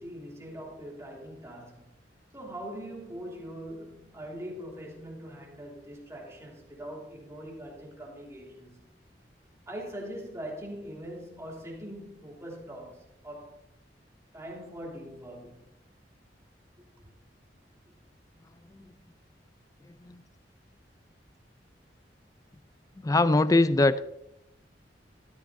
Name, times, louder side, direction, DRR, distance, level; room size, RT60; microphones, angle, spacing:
voice 1, 0.0-1.9 2.3-8.9 9.7-13.6 14.3-15.8 17.0-17.1, equal, 15° right, 2.8 m, -42 dB
voice 2, 19.9-20.2 23.0-24.0, left 2 dB, 20° left, 0.4 m, -23 dB
13.0 x 12.5 x 2.7 m
head